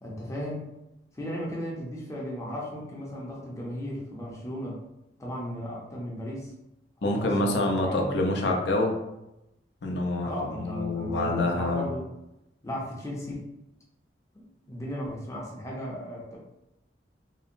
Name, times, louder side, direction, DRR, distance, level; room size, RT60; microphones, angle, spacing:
voice 1, 0.0-0.7 1.2-4.8 5.2-6.5 7.0-8.1 10.2-12.1 12.6-13.5 14.3-16.4, equal, 15° left, -4 dB, 0.5 m, -35 dB
voice 2, 7.0-8.9 9.8-11.8, left 2 dB, 75° left, 1 dB, 0.5 m, -26 dB
2.7 x 2.0 x 2.5 m, 0.89 s
head